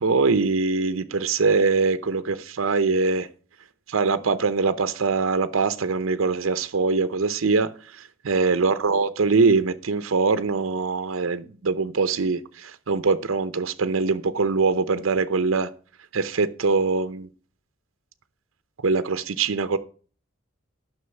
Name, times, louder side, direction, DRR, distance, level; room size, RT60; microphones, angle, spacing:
voice 1, 0.0-3.3 3.9-15.7 16.1-17.3 18.8-19.8, right 4 dB, 90° right, 12 dB, 0.7 m, -23 dB
9.6 x 6.3 x 7.0 m, 0.40 s
head